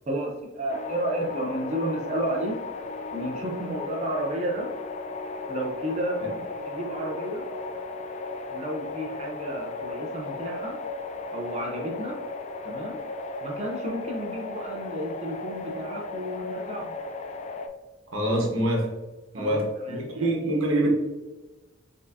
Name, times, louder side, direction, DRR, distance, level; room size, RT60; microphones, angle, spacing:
voice 1, 0.1-2.6 3.1-4.7 5.5-7.4 8.5-10.8 11.3-12.2 12.6-13.0 13.4-17.0 19.3-20.3, right 1 dB, 35° right, -2 dB, 0.6 m, -32 dB
sound 1, 0.7-17.7, left 3 dB, 35° left, 0.3 m, -36 dB
voice 2, 18.1-19.0 19.3-20.9, right 1 dB, 85° right, 0 dB, 1.1 m, -25 dB
4.4 x 3.6 x 2.7 m, 1.2 s
head